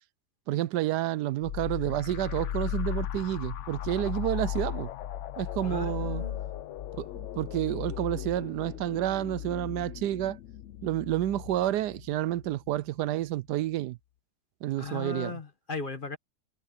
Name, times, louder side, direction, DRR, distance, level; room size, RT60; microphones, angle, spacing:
voice 1, 0.5-4.9 5.4-6.2 7.0-10.4 10.8-14.0 14.6-15.3, right 13 dB, 90° right, 1.2 m, -30 dB
sound 1, 1.4-12.8, left 11 dB, 65° left, 0.8 m, -36 dB
voice 2, 5.6-6.4 14.8-16.2, left 3 dB, 35° left, 1.5 m, -37 dB
omnidirectional pair, 1.7 m